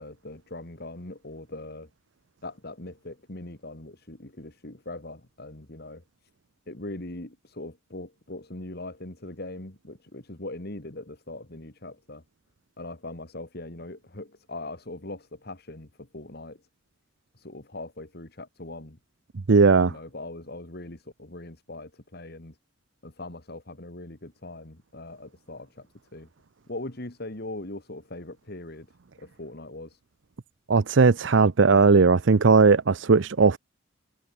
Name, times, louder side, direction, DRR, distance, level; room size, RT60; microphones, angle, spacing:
voice 1, 0.0-1.9 2.4-6.3 6.7-12.2 12.8-16.7 17.3-19.0 19.8-22.6 23.0-26.3 26.7-28.9 29.2-30.0, left 2 dB, 55° left, 2.3 m, -40 dB
voice 2, 19.5-19.9 30.7-33.6, right 4 dB, 65° right, 0.6 m, -18 dB
head